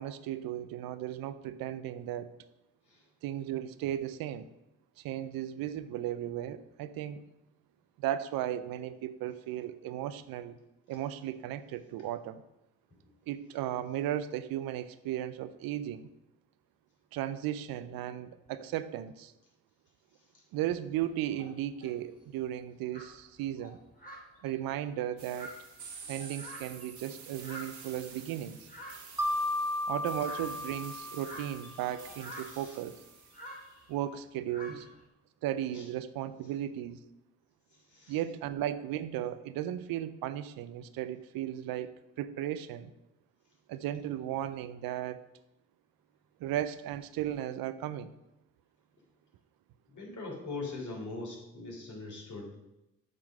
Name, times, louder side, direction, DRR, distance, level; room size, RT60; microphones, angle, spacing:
voice 1, 0.0-2.3 3.2-4.5 5.0-7.2 8.0-10.6 10.9-12.4 13.3-16.1 17.1-19.3 20.5-23.8 24.4-25.5 26.1-28.7 29.9-33.0 33.9-34.9 35.4-37.0 38.1-41.9 42.2-42.9 43.7-45.2 46.4-48.1, right 12 dB, 80° right, 13 dB, 0.5 m, -35 dB
sound 1, 21.0-21.9 22.6-22.7 22.9-27.0 27.4-34.0 34.5-35.0, equal, 25° left, 2.6 m, -49 dB
sound 2, 25.2-33.6, right 5 dB, 55° right, 1.4 m, -49 dB
Mallet percussion, 29.2-32.0, left 1 dB, 5° right, 0.8 m, -34 dB
voice 2, 32.4-32.8 35.7-35.8 37.9-38.2 49.9-52.6, left 3 dB, 55° left, -2 dB, 3.1 m, -41 dB
7.4 x 3.8 x 6.2 m, 0.93 s
supercardioid pair, 45°, 35 cm